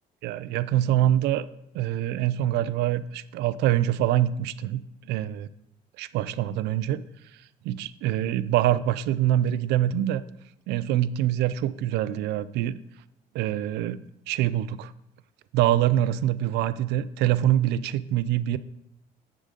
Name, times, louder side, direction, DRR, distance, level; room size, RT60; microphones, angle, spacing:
voice 1, 0.2-1.4 1.7-5.5 6.0-7.0 7.6-10.2 10.7-12.8 13.3-14.0 14.3-14.9 15.5-18.6, right 12 dB, 80° right, 16 dB, 0.4 m, -25 dB
10.0 x 3.8 x 5.1 m, 0.79 s
cardioid pair, 110°, 17 cm